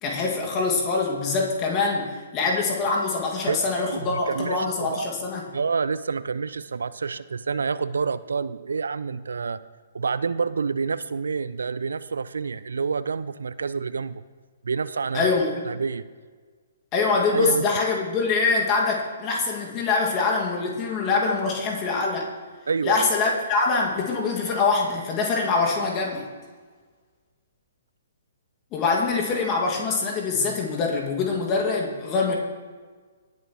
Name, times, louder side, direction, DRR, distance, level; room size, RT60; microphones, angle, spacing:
voice 1, 0.0-5.4 15.1-15.7 16.9-22.3 22.8-26.2 28.7-32.3, left 4 dB, 25° left, -1 dB, 2.0 m, -24 dB
voice 2, 3.5-5.1 5.5-9.6 9.9-14.2 14.6-15.3 15.6-16.0 17.3-17.7 22.7-23.1, right 5 dB, 65° right, 16 dB, 0.4 m, -28 dB
18.0 x 7.4 x 3.1 m, 1.5 s
figure-of-eight pair, 125°, 0 cm